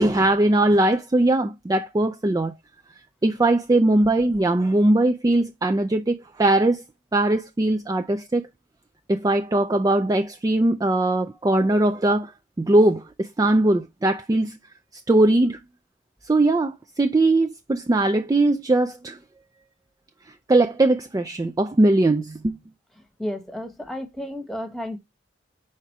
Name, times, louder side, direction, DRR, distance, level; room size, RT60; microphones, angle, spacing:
voice 1, 0.0-2.5 3.2-6.8 7.1-8.5 9.1-12.3 12.6-14.6 15.1-15.6 16.2-19.2 20.5-22.6, right 2 dB, 20° right, 0.3 m, -20 dB
voice 2, 23.2-25.0, left 1 dB, ahead, 1.2 m, -32 dB
4.9 x 4.3 x 4.6 m
head